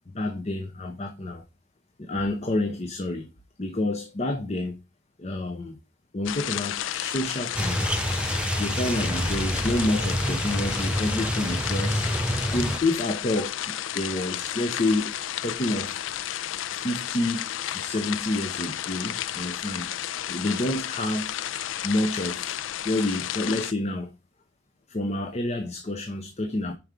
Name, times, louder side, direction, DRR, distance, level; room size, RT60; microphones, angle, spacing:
voice 1, 0.1-1.4 2.0-3.3 3.6-4.8 5.2-5.8 6.1-8.0 8.6-12.1 12.5-15.1 15.4-16.0 16.8-19.9 20.3-21.4 21.8-22.6 22.8-24.1 24.9-26.7, left 1 dB, 35° left, 0.6 m, -28 dB
sound 1, 6.3-23.7, left 11 dB, 85° left, 0.4 m, -32 dB
sound 2, 7.6-12.8, equal, 5° right, 0.4 m, -27 dB
5.2 x 4.6 x 4.9 m
head